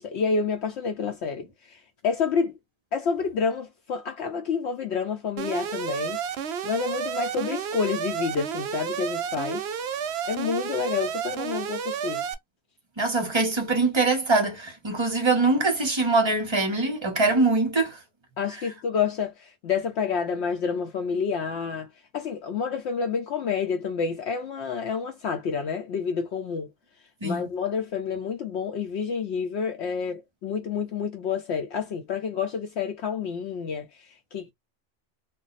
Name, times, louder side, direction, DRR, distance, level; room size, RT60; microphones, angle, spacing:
voice 1, 0.0-2.5 2.9-9.7 10.3-12.3 18.4-26.7 27.2-34.5, left 6 dB, 65° left, 0.8 m, -29 dB
Alarm, 5.4-12.3, right 7 dB, 65° right, 0.7 m, -31 dB
voice 2, 13.0-18.0 27.2-27.4, right 3 dB, 30° right, 0.6 m, -23 dB
2.5 x 2.0 x 3.9 m
omnidirectional pair, 1.3 m